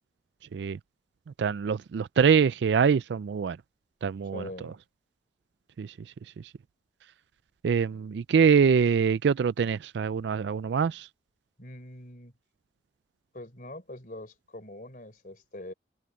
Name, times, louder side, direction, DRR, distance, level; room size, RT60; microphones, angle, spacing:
voice 1, 1.4-3.6 4.0-4.4 5.8-5.9 7.6-11.1, right 6 dB, 70° right, 0.3 m, -24 dB
voice 2, 4.3-4.8 11.6-12.3 13.3-15.7, left 1 dB, 45° left, 3.8 m, -43 dB
head